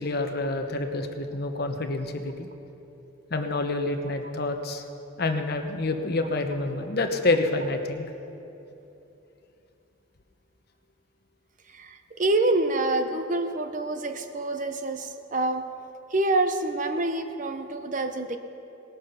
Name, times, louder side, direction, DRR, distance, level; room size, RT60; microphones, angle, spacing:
voice 1, 0.0-2.5 3.3-4.8 5.2-8.0, left 2 dB, 50° left, 6 dB, 1.0 m, -27 dB
voice 2, 11.7-15.6 16.1-18.4, right 2 dB, 40° right, 8 dB, 0.7 m, -26 dB
19.0 x 9.1 x 5.8 m, 3.0 s
head